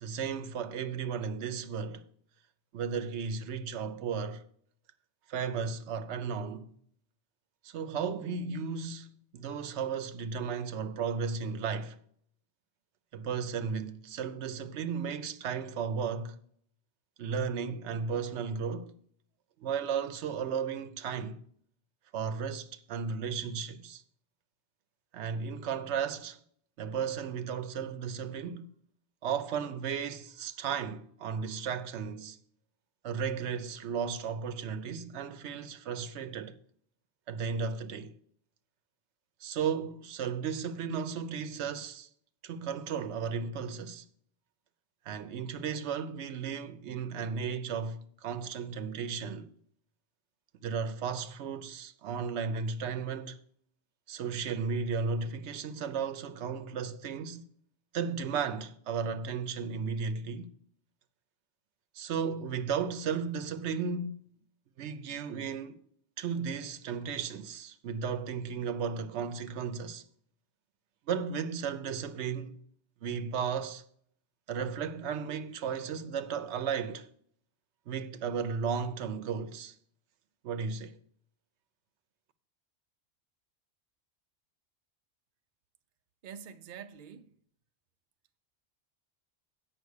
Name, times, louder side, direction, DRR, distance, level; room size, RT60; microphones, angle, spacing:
voice 1, 0.0-2.0 2.7-4.4 5.3-6.7 7.6-12.0 13.1-16.4 17.2-18.9 19.6-21.4 22.1-24.0 25.1-26.4 26.8-28.7 29.2-32.4 33.0-36.6 37.3-38.1 39.4-42.1 42.4-44.0 45.0-49.5 50.6-53.4 54.1-57.4 57.9-60.5 61.9-64.3 64.8-65.8 66.2-70.0 71.1-72.6 73.0-73.8 74.5-77.1 77.9-79.7 80.4-81.0, right 6 dB, 80° right, 0.9 m, -34 dB
voice 2, 86.2-87.4, right 7 dB, 55° right, 0.7 m, -46 dB
8.2 x 5.8 x 6.4 m
omnidirectional pair, 1.2 m